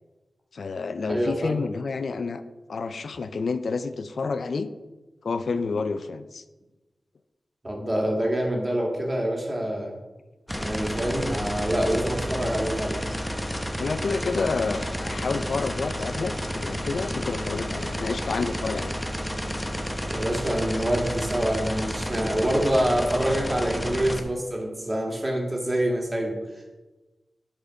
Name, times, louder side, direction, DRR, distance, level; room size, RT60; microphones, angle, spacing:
voice 1, 0.5-2.4 2.7-4.7 5.2-6.4 13.8-19.1, left 4 dB, 75° left, 11 dB, 0.4 m, -29 dB
voice 2, 1.1-1.6 7.6-9.9 10.6-13.0 20.1-26.4, right 1 dB, 30° right, 0 dB, 1.9 m, -26 dB
sound 1, 10.5-24.2, equal, 10° left, 0.8 m, -31 dB
7.8 x 4.3 x 4.7 m, 1.1 s
cardioid pair, 55°, 0 cm